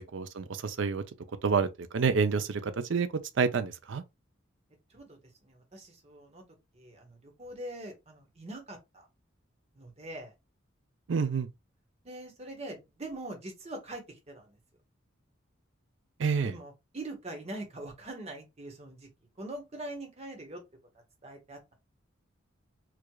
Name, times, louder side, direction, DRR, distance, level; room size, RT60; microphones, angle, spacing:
voice 1, 0.1-1.0 1.4-3.1 3.4-4.0 11.1-11.5 16.2-16.5, right 5 dB, 65° right, 0.5 m, -28 dB
voice 2, 4.9-6.4 6.7-9.1 9.7-10.3 11.1-11.4 12.0-14.6 16.4-19.1 19.4-20.6 21.2-21.7, right 1 dB, 35° right, 1.2 m, -43 dB
4.6 x 2.4 x 2.2 m
head